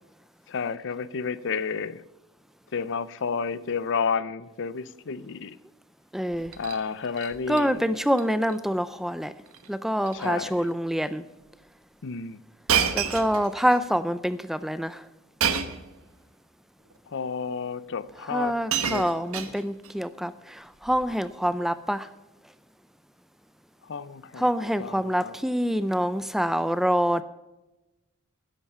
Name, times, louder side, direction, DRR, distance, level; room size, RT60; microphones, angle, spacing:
voice 1, 0.5-2.0 2.7-5.6 6.6-7.8 10.1-10.5 12.0-12.4 17.1-19.4 23.9-24.4 24.8-25.3, left 5 dB, 55° left, 0.6 m, -31 dB
voice 2, 6.1-6.6 7.5-9.3 9.7-11.3 12.9-15.1 18.3-22.1 24.3-27.2, equal, ahead, 0.3 m, -26 dB
Shatter, 6.3-6.8 7.2-7.6 8.0-8.2 8.5-8.6 9.5-9.7 10.0-10.3 11.0-11.1 12.7-13.8 15.4-15.9 16.9-17.0 18.0-18.1 18.4-19.9 20.9-21.1, right 7 dB, 70° right, 1.1 m, -29 dB
12.5 x 10.5 x 5.6 m
head